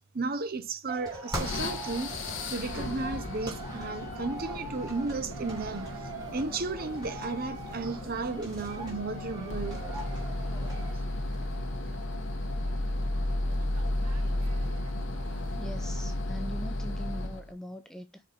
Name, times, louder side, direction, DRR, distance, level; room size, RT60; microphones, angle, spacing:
voice 1, 0.1-5.9 6.3-9.8, right 3 dB, 40° right, 0.7 m, -34 dB
sound 1, 0.9-10.9, right 2 dB, 20° right, 3.2 m, -41 dB
sound 2, 1.4-17.5, left 1 dB, 55° left, 1.1 m, -34 dB
sound 3, 2.3-16.2, right 3 dB, 85° right, 0.9 m, -51 dB
voice 2, 15.6-18.2, equal, ahead, 0.4 m, -41 dB
5.2 x 4.8 x 4.2 m
head